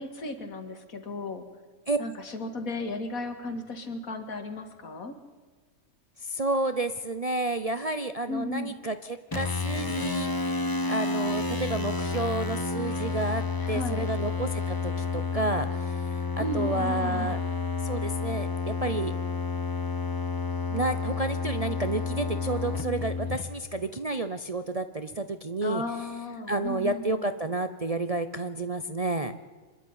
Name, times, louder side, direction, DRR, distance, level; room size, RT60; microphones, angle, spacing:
voice 1, 0.0-1.5 2.0-5.1 8.3-8.7 13.6-14.1 16.4-17.4 25.6-27.3, left 2 dB, 75° left, 7 dB, 2.4 m, -35 dB
voice 2, 6.2-10.6 10.9-13.4 13.7-17.4 17.8-19.1 20.7-25.8 26.5-29.3, right 2 dB, 35° right, 9 dB, 0.6 m, -30 dB
sound 1, 9.3-23.4, left 4 dB, 20° left, 0.8 m, -30 dB
26.0 x 11.5 x 9.5 m, 1.4 s
omnidirectional pair, 1.5 m